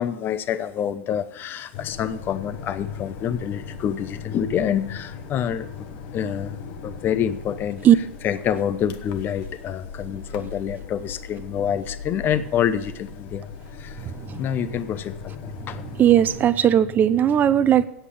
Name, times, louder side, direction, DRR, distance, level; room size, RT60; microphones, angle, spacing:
voice 1, 0.0-5.9 6.1-6.6 6.8-7.9 8.2-13.5 13.8-14.0 14.3-15.3 15.7-15.8, left 9 dB, 30° left, 0.7 m, -27 dB
sound 1, 1.7-16.5, left 5 dB, 50° left, 1.2 m, -38 dB
voice 2, 14.1-14.4 15.9-17.9, right 10 dB, 25° right, 0.6 m, -17 dB
8.3 x 8.0 x 8.5 m
hypercardioid pair, 105°, 7 cm